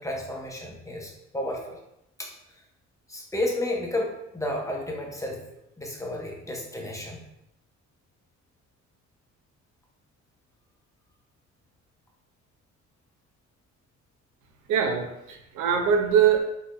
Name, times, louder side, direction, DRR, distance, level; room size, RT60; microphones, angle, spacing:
voice 1, 0.0-1.8 2.2-2.3 3.1-5.4 5.8-7.2, left 1 dB, 10° left, -1 dB, 0.8 m, -32 dB
voice 2, 14.7-16.4, right 7 dB, 90° right, 4 dB, 0.6 m, -22 dB
4.0 x 2.9 x 2.5 m, 0.82 s
cardioid pair, 90°, 30 cm